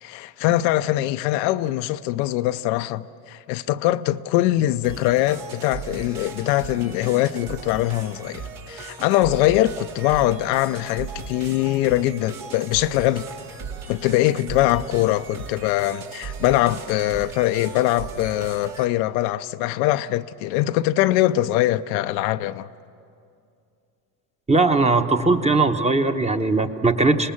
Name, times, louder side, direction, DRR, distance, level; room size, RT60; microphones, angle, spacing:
voice 1, 0.0-13.3 13.9-22.7, left 15 dB, 80° left, 0.7 m, -22 dB
sound 1, 4.8-18.8, right 5 dB, 70° right, 2.8 m, -37 dB
voice 2, 24.5-27.3, right 3 dB, 15° right, 1.1 m, -19 dB
26.0 x 19.0 x 7.2 m
supercardioid pair, 80°, 50 cm